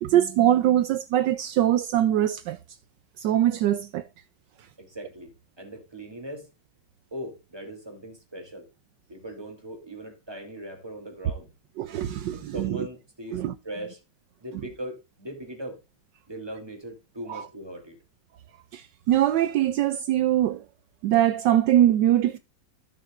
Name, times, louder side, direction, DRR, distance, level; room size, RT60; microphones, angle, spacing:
voice 1, 0.0-2.6 3.2-4.0 11.8-12.7 13.3-13.5 17.3-17.4 18.7-20.6 21.0-22.4, right 12 dB, 75° right, 1.2 m, -22 dB
voice 2, 4.8-5.3 5.6-6.5 7.1-8.7 9.1-11.5 12.3-14.0 14.4-15.8 16.3-18.0, equal, 15° right, 2.8 m, -39 dB
15.5 x 6.5 x 2.4 m
omnidirectional pair, 2.0 m